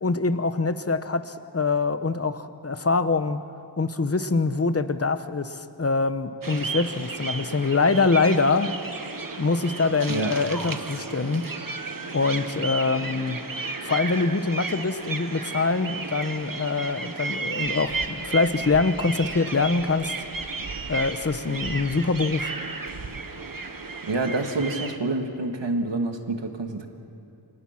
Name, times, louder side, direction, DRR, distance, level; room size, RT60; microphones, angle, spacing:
voice 1, 0.0-3.4 3.8-8.7 9.4-11.4 12.1-13.4 13.8-20.1 20.9-22.5, left 3 dB, 35° left, 11 dB, 1.0 m, -24 dB
sound 1, 6.4-25.0, right 3 dB, 50° right, 1.5 m, -33 dB
voice 2, 24.1-26.9, right 2 dB, 80° right, 4 dB, 2.2 m, -27 dB
29.0 x 25.5 x 6.0 m, 2.7 s
wide cardioid pair, 75°, 42 cm